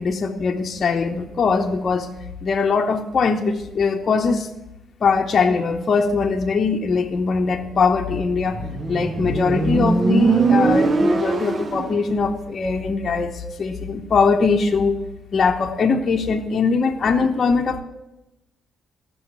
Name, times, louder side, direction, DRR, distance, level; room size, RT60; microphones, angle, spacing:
voice 1, 0.0-2.1 2.4-4.5 5.0-15.0 15.3-17.8, left 4 dB, 45° left, 1 dB, 0.9 m, -21 dB
Motorcycle, 8.5-12.0, right 3 dB, 35° right, 0.8 m, -20 dB
14.0 x 6.3 x 8.1 m, 0.97 s
cardioid pair, 90°, 0 cm